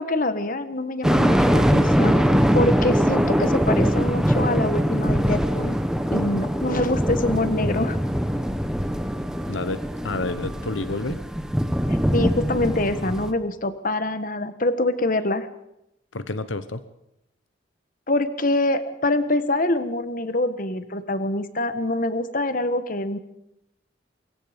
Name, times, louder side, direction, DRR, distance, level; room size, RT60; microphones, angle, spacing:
voice 1, 0.0-2.2 2.5-5.8 6.1-8.0 11.9-15.5 18.1-23.2, left 2 dB, 45° left, 11 dB, 1.3 m, -25 dB
sound 1, 1.0-13.3, equal, 5° right, 1.2 m, -22 dB
voice 2, 9.5-11.2 16.1-16.8, left 2 dB, 75° left, 12 dB, 1.0 m, -29 dB
25.0 x 22.5 x 5.2 m, 0.82 s
head